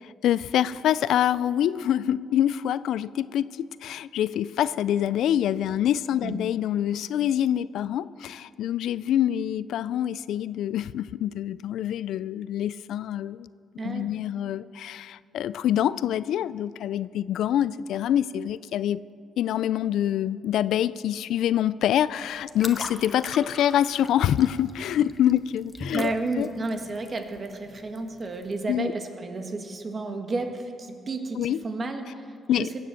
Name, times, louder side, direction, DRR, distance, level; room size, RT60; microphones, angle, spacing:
voice 1, 0.0-13.5 13.8-19.0 19.4-26.5 28.7-28.9 31.4-31.6 32.5-32.7, left 11 dB, 80° left, 18 dB, 0.3 m, -25 dB
voice 2, 13.8-14.1 25.9-32.3 32.5-32.7, right 3 dB, 40° right, 5 dB, 1.6 m, -32 dB
sound 1, 22.0-28.7, left 3 dB, 25° left, 0.9 m, -42 dB
17.5 x 7.6 x 7.7 m, 2.3 s
cardioid pair, 90°, 0 cm